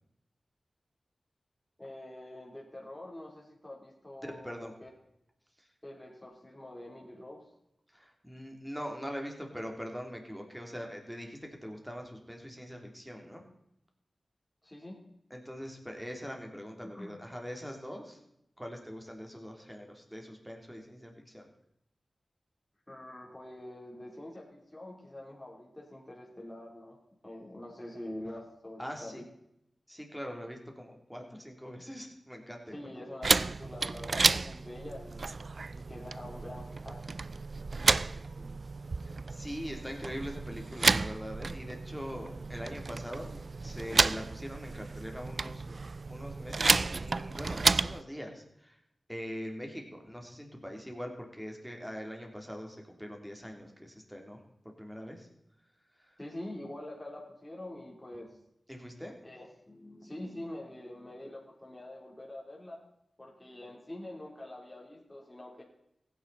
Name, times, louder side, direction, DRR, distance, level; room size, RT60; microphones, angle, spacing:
voice 1, 1.8-4.9 5.8-7.5 14.6-15.0 16.8-17.2 22.9-27.0 27.2-29.1 32.7-35.3 35.7-37.3 37.9-38.5 56.2-58.4 59.2-62.8 63.2-65.6, left 1 dB, 15° left, -3 dB, 3.6 m, -45 dB
voice 2, 4.3-4.7 7.9-13.4 15.3-18.2 18.6-21.5 28.8-29.2 29.9-32.9 37.9-38.2 39.0-45.8 46.1-48.8 49.1-54.4 54.6-55.3 58.7-59.1, equal, 5° right, 2 dB, 3.2 m, -42 dB
sound 1, 33.2-48.0, right 3 dB, 60° right, 0.3 m, -31 dB
16.0 x 9.6 x 4.2 m, 0.79 s
cardioid pair, 50°, 0 cm